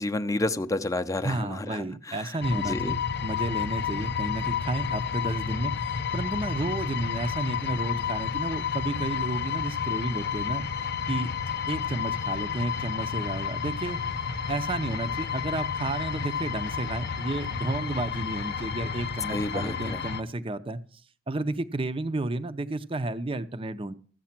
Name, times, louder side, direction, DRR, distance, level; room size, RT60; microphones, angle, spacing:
voice 1, 0.0-2.3 2.7-2.9 19.3-20.0, left 2 dB, 15° left, 0.6 m, -30 dB
voice 2, 1.2-10.7 11.1-14.0 14.5-20.8 21.3-23.9, right 2 dB, 25° right, 0.7 m, -32 dB
sound 1, 2.4-20.2, left 7 dB, 55° left, 0.7 m, -31 dB
14.5 x 8.3 x 5.9 m
head